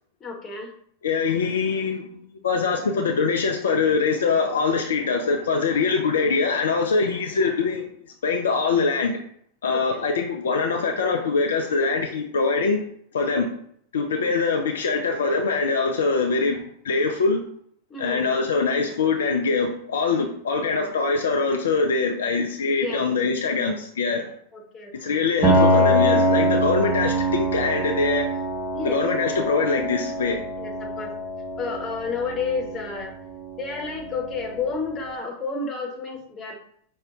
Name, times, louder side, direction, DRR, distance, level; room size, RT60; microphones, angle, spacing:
voice 1, 0.2-0.7 9.7-10.0 14.2-14.3 17.9-18.3 22.8-23.3 24.5-25.2 28.7-29.0 30.6-31.1 31.6-33.1 33.6-36.6, left 4 dB, 25° left, 1 dB, 1.0 m, -31 dB
voice 2, 1.0-7.9 8.2-9.2 9.6-12.8 13.1-13.5 13.9-16.6 16.8-17.4 18.0-24.2 24.9-28.3 28.8-30.4, left 4 dB, 65° left, 3 dB, 0.4 m, -23 dB
Piano, 25.4-35.0, right 1 dB, 20° right, 1.2 m, -24 dB
5.2 x 2.1 x 3.5 m, 0.64 s
figure-of-eight pair, 90°, 0 cm